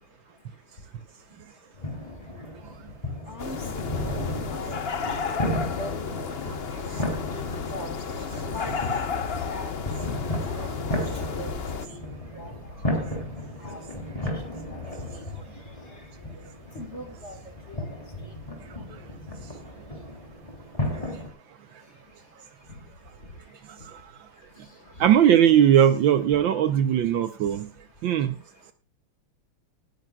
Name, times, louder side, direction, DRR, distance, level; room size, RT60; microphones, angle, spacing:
sound 1, 1.8-21.3, left 1 dB, 15° left, 3.2 m, -34 dB
voice 1, 3.3-4.2 4.5-6.1 6.9-8.0 8.4-9.0 9.4-11.5 11.8-13.2 13.6-13.8 14.1-15.3 15.9-16.0 16.3-16.4 16.7-17.4 17.7-17.9 18.2-18.3 18.9-19.0 22.7-22.8 24.9-25.1 26.6-26.8, left 1 dB, 35° left, 6 dB, 1.8 m, -42 dB
sound 2, 3.4-11.9, left 5 dB, 60° left, 0.6 m, -32 dB
voice 2, 25.0-27.7 28.0-28.3, right 10 dB, 70° right, 11 dB, 1.4 m, -19 dB
18.5 x 10.5 x 2.3 m, 0.29 s
omnidirectional pair, 2.4 m